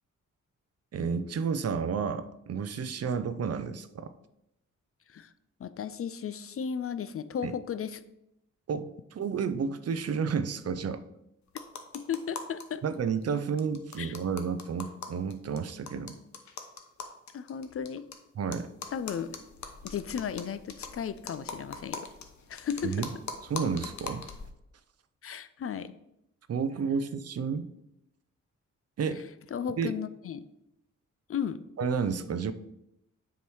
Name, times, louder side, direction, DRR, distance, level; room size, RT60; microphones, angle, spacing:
voice 1, 0.9-4.1 7.4-7.6 8.7-11.0 12.8-16.2 18.4-18.7 22.8-23.1 23.4-24.2 26.5-27.7 29.0-29.2 29.8-29.9 31.8-32.5, right 6 dB, 50° right, 13 dB, 0.5 m, -31 dB
voice 2, 5.6-8.0 11.9-12.8 14.0-14.1 17.3-18.1 18.9-19.4 19.8-22.1 22.5-23.0 25.2-25.9 29.5-30.4 31.3-31.6, left 7 dB, 45° left, 13 dB, 0.4 m, -35 dB
sound 1, 11.5-12.6 12.9-13.0 13.2-13.3 13.6-18.1 18.5-24.5, left 5 dB, 60° left, 0.9 m, -42 dB
7.0 x 3.1 x 4.6 m, 0.82 s
cardioid pair, 55°, 31 cm